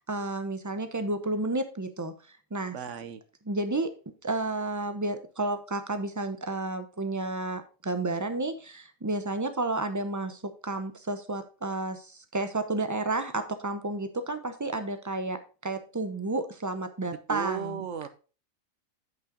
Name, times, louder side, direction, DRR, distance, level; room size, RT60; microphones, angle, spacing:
voice 1, 0.0-2.8 3.5-17.8, right 2 dB, 15° right, 8 dB, 0.7 m, -31 dB
voice 2, 2.7-3.2 17.3-18.1, right 7 dB, 65° right, 12 dB, 1.1 m, -34 dB
9.6 x 5.7 x 3.8 m, 0.35 s
omnidirectional pair, 1.4 m